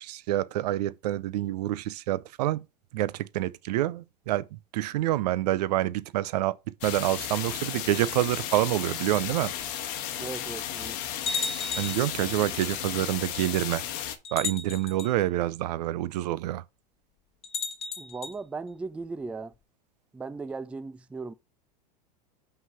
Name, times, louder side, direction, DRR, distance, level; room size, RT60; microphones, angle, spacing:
voice 1, 0.0-2.6 2.9-4.4 4.7-6.6 6.8-9.5 11.8-13.8 14.3-16.6, right 15 dB, 70° right, 0.5 m, -27 dB
sound 1, 6.8-14.2, left 11 dB, 55° left, 1.2 m, -34 dB
sound 2, 9.6-9.7 10.5-10.6 11.3-12.1 13.3-13.4 14.2-15.1 17.4-18.3, left 5 dB, 30° left, 1.2 m, -33 dB
voice 2, 10.2-11.0 18.0-19.5 20.1-21.3, right 4 dB, 5° right, 0.3 m, -37 dB
5.7 x 3.9 x 5.4 m
hypercardioid pair, 100°, 21 cm